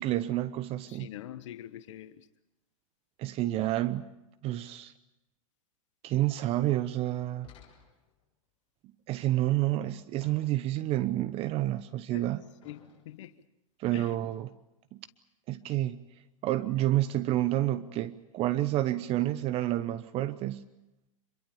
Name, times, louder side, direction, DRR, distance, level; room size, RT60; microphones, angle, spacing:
voice 1, 0.0-1.1 3.2-4.1 4.4-4.9 6.0-7.5 9.1-12.4 13.8-14.5 14.9-15.0 15.5-16.0 16.4-20.7, right 14 dB, 35° right, 0.9 m, -29 dB
voice 2, 0.9-2.3 12.1-12.3 12.6-12.8 13.0-13.4 13.9-14.2, left 12 dB, 65° left, 1.2 m, -44 dB
sound 1, 7.4-8.2 10.2-10.9 12.6-13.3 14.1-14.4, left 8 dB, 35° left, 6.1 m, -56 dB
26.0 x 22.5 x 7.2 m
hypercardioid pair, 115°, 17 cm